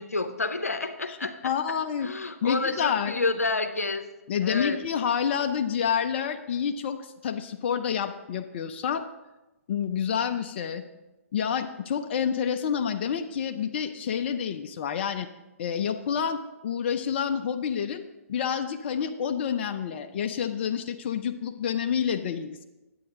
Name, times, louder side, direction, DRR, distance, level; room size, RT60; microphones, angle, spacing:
voice 1, 0.0-1.5 2.0-4.0 4.4-4.8, left 3 dB, 90° left, 8 dB, 0.7 m, -29 dB
voice 2, 1.4-2.1 2.4-3.1 4.3-9.0 9.7-10.8 11.3-15.3 15.6-16.4 16.6-18.0 18.3-22.6, left 7 dB, 45° left, 7 dB, 0.5 m, -28 dB
9.3 x 8.7 x 3.7 m, 1.0 s
figure-of-eight pair, 125°, 8 cm